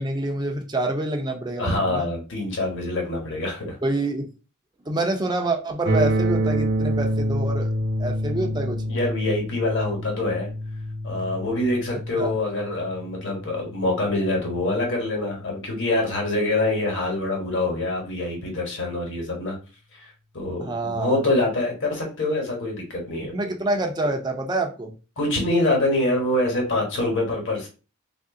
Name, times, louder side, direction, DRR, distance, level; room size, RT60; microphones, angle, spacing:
voice 1, 0.0-2.1 3.8-4.3 4.9-7.7 8.0-8.8 12.2-12.4 20.6-21.2 23.3-24.9, right 2 dB, 20° right, 3 dB, 0.5 m, -27 dB
voice 2, 1.6-3.8 8.5-8.6 8.9-10.5 11.0-19.6 19.9-23.3 25.2-27.7, left 2 dB, 55° left, 0 dB, 1.3 m, -25 dB
sound 1, 5.9-15.8, right 1 dB, 55° right, 0.8 m, -28 dB
3.1 x 2.6 x 3.6 m, 0.33 s
head